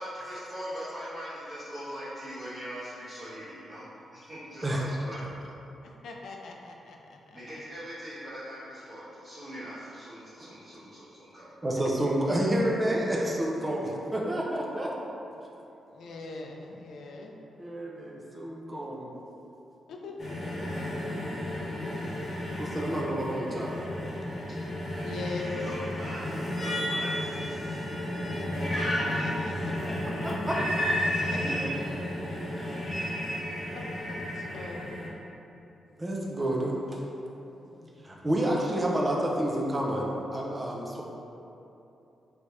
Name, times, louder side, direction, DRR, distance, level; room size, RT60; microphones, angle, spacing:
voice 1, 0.0-5.3 7.3-11.5 24.4-24.7 25.3-27.8, equal, 35° right, -13 dB, 1.0 m, -41 dB
voice 2, 5.8-7.4 15.8-17.3 19.9-20.7 25.0-25.6 29.1-29.8 31.3-31.5 34.2-34.9 36.1-36.2 37.5-38.2, left 3 dB, 75° left, 1 dB, 0.4 m, -42 dB
voice 3, 11.6-14.9 17.6-19.1 22.6-23.7 29.7-30.7 31.3-31.8 32.6-32.8 36.0-37.0 38.0-41.0, right 1 dB, 15° right, -2 dB, 0.5 m, -29 dB
sound 1, 20.2-35.1, left 1 dB, 30° left, 0.8 m, -32 dB
3.2 x 2.7 x 4.6 m, 2.9 s
wide cardioid pair, 140°, 0 cm